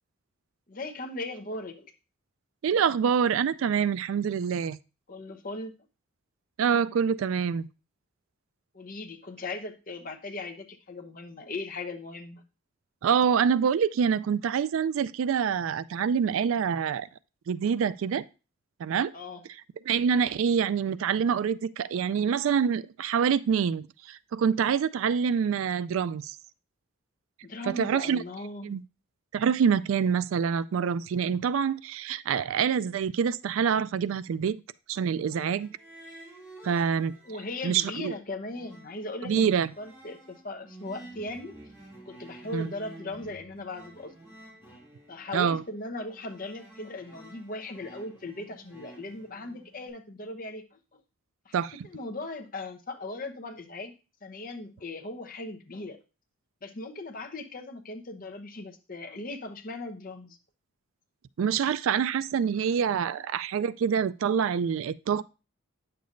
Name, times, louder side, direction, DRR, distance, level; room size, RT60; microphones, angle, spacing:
voice 1, 0.7-1.9 5.1-5.7 8.7-12.4 19.1-19.4 27.4-28.7 37.2-39.5 39.8-41.6 42.1-44.1 45.1-51.0 51.4-51.5 51.8-53.9 54.2-56.0 56.6-60.4 63.1-63.2, left 2 dB, 40° left, 0.8 m, -38 dB
voice 2, 2.6-4.8 6.6-7.7 13.0-17.1 17.5-18.2 18.8-19.1 19.9-26.4 27.6-28.2 28.6-28.8 29.3-34.6 34.9-35.7 36.6-37.1 37.6-38.1 39.2-39.7 42.5-42.7 45.3-45.6 51.5-51.7 61.4-65.2, right 7 dB, 70° right, 0.3 m, -26 dB
sound 1, 35.3-37.6 37.9-49.9, right 1 dB, 10° right, 4.3 m, -50 dB
9.3 x 6.8 x 2.5 m
head